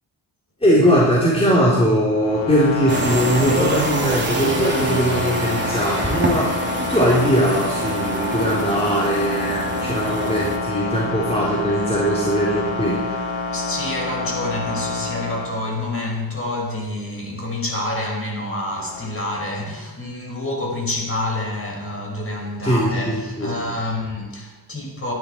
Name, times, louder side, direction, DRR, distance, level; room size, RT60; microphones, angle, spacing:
voice 1, 0.6-13.4 22.6-23.6, equal, 15° left, -6 dB, 3.7 m, -20 dB
sound 1, 2.1-16.2 18.5-19.1, left 3 dB, 85° left, 2.3 m, -28 dB
sound 2, 2.9-10.6, right 2 dB, 25° right, 3.0 m, -26 dB
voice 2, 13.5-25.1, left 1 dB, 30° left, -1 dB, 5.5 m, -28 dB
18.5 x 12.0 x 4.6 m, 1.2 s
cardioid pair, 95°, 46 cm